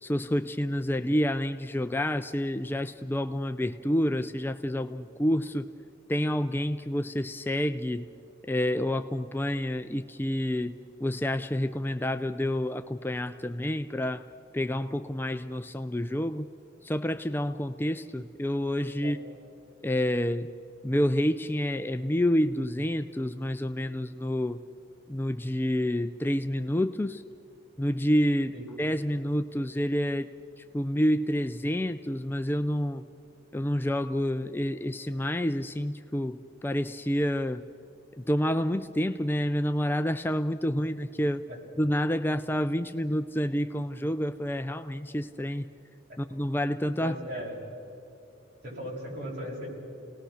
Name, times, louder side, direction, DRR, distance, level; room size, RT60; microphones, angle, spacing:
voice 1, 0.0-5.7 6.1-8.1 8.5-14.3 14.5-16.5 16.8-19.2 19.8-20.5 20.8-24.6 25.1-27.2 27.8-33.0 33.5-37.6 38.2-41.4 41.8-45.7 46.2-47.2, equal, 10° left, 9 dB, 0.4 m, -28 dB
voice 2, 47.0-47.6 48.6-49.7, equal, 55° right, -3 dB, 6.6 m, -37 dB
29.5 x 19.0 x 6.4 m, 2.9 s
head